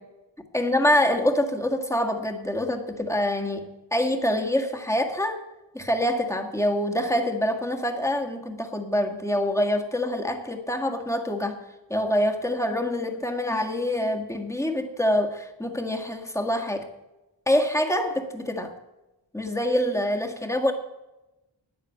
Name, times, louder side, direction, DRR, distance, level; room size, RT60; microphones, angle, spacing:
voice 1, 0.5-5.4 5.7-11.6 11.9-16.9 17.5-18.7 19.3-20.7, left 1 dB, 5° left, 3 dB, 1.7 m, -25 dB
10.0 x 9.6 x 8.3 m, 1.0 s
wide cardioid pair, 45°, 45 cm